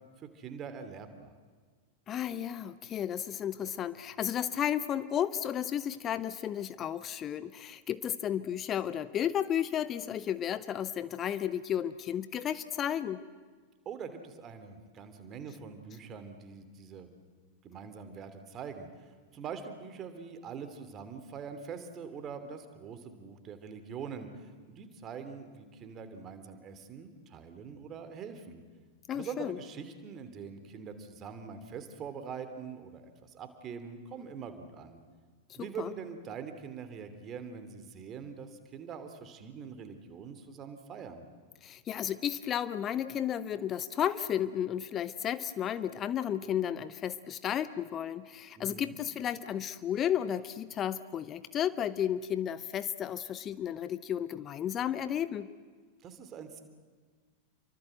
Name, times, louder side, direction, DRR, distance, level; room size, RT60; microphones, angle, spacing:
voice 1, 0.2-1.3 13.8-17.1 17.6-28.6 29.1-35.0 35.5-41.2 48.5-49.0 56.0-56.6, right 6 dB, 30° right, 8 dB, 2.9 m, -44 dB
voice 2, 2.1-13.2 29.1-29.6 35.6-35.9 41.6-55.5, left 10 dB, 30° left, 15 dB, 0.7 m, -33 dB
28.5 x 24.0 x 7.9 m, 1.5 s
figure-of-eight pair, 90°, 0 cm